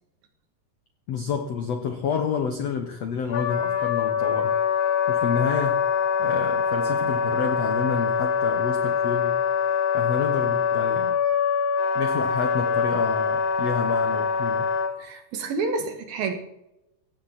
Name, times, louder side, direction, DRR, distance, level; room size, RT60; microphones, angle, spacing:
voice 1, 1.1-4.5 5.1-5.8 6.2-9.4 9.9-11.2 11.9-14.6, left 6 dB, 85° left, 6 dB, 1.4 m, -29 dB
Wind instrument woodwind instrument, 3.3-14.9, left 6 dB, 50° left, 2.1 m, -24 dB
voice 2, 15.0-16.3, right 4 dB, 65° right, 5 dB, 3.6 m, -29 dB
17.0 x 15.0 x 4.2 m, 0.86 s
omnidirectional pair, 4.9 m